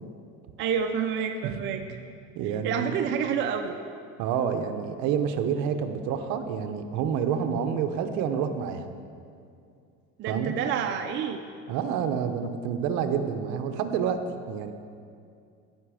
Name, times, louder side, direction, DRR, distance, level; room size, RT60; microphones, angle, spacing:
voice 1, 0.6-1.8 2.6-3.7 10.2-11.4, right 7 dB, 35° right, 4 dB, 0.5 m, -28 dB
voice 2, 2.3-3.0 4.2-8.9 10.3-10.5 11.7-14.2 14.5-14.7, right 7 dB, 60° right, 8 dB, 0.8 m, -28 dB
15.0 x 5.9 x 4.9 m, 2.4 s
cardioid pair, 145°, 31 cm